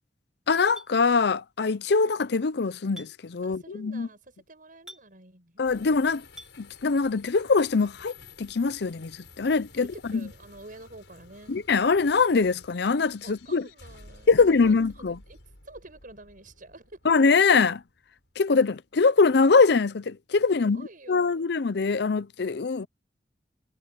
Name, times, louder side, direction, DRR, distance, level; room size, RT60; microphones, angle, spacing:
voice 1, 0.5-4.1 5.6-6.2 6.6-10.3 11.5-13.7 14.3-15.2 17.0-17.8 18.4-20.8 21.1-22.9, left 4 dB, 65° left, 0.6 m, -23 dB
Chink clink, 0.8-0.9 2.9-3.1 4.9-5.1 6.4-6.5, right 1 dB, 5° right, 5.1 m, -44 dB
voice 2, 3.4-5.6 9.7-11.6 13.2-17.0 20.5-21.5, right 2 dB, 50° right, 7.6 m, -48 dB
sound 1, 5.6-19.0, left 3 dB, 90° left, 6.0 m, -53 dB
head